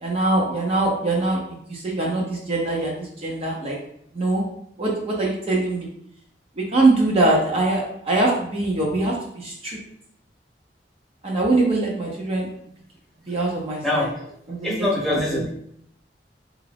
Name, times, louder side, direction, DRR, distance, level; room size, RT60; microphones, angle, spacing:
voice 1, 0.0-3.8 4.1-4.4 4.8-5.9 6.6-9.8 11.2-12.5 13.3-14.1 14.5-14.7 15.1-15.4, right 2 dB, 35° right, -3 dB, 0.6 m, -23 dB
voice 2, 13.8-14.1 14.6-15.5, left 1 dB, ahead, -5 dB, 0.9 m, -23 dB
3.9 x 2.4 x 3.3 m, 0.71 s
head